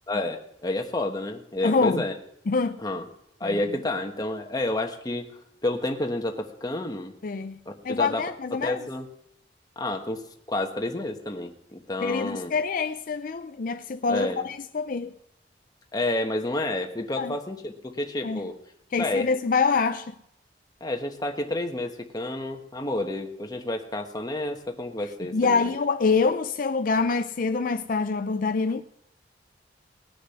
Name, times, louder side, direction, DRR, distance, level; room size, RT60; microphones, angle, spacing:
voice 1, 0.1-2.1 2.8-3.0 3.4-5.3 5.6-7.1 7.7-8.2 8.5-9.0 9.8-10.2 10.5-12.5 14.1-14.4 15.9-18.5 19.0-19.3 20.8-25.8, left 2 dB, 20° left, 1.2 m, -30 dB
voice 2, 1.6-2.0 2.5-2.8 3.4-3.6 7.2-7.6 7.8-8.8 12.0-15.1 17.2-17.3 18.2-18.4 18.9-20.1 25.3-28.8, left 4 dB, 50° left, 0.5 m, -25 dB
19.5 x 6.8 x 5.7 m
head